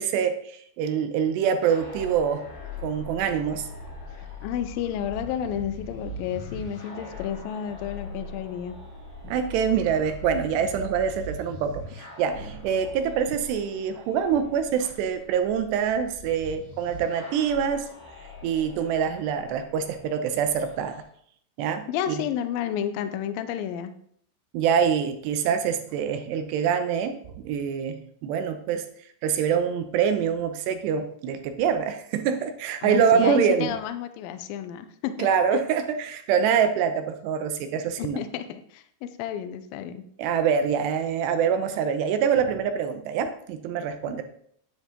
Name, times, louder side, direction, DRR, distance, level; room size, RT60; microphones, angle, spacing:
voice 1, 0.0-2.5 2.8-3.7 9.2-17.9 18.4-21.0 21.6-22.2 24.5-28.9 29.2-33.7 35.2-38.2 40.2-44.2, right 7 dB, 80° right, 8 dB, 2.8 m, -25 dB
sound 1, 1.6-21.0, left 1 dB, 30° left, 3.4 m, -41 dB
voice 2, 4.4-8.8 21.9-23.9 32.8-35.6 38.0-40.0 44.1-44.2, left 9 dB, 85° left, 10 dB, 2.0 m, -31 dB
9.9 x 9.9 x 3.8 m, 0.64 s
omnidirectional pair, 5.1 m